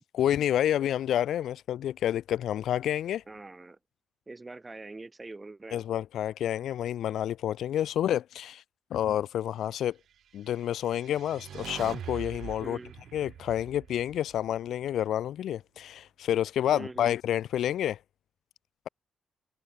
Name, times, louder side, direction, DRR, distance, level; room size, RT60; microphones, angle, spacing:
voice 1, 0.1-3.2 5.7-8.6 8.9-10.0 10.3-12.8 13.1-18.0, left 11 dB, 80° left, 0.6 m, -29 dB
voice 2, 3.3-3.8 4.3-5.8 12.6-12.9 16.7-17.1, right 3 dB, 20° right, 1.6 m, -43 dB
sound 1, 10.6-14.9, right 9 dB, 70° right, 2.0 m, -43 dB
cardioid pair, 110°, 0 cm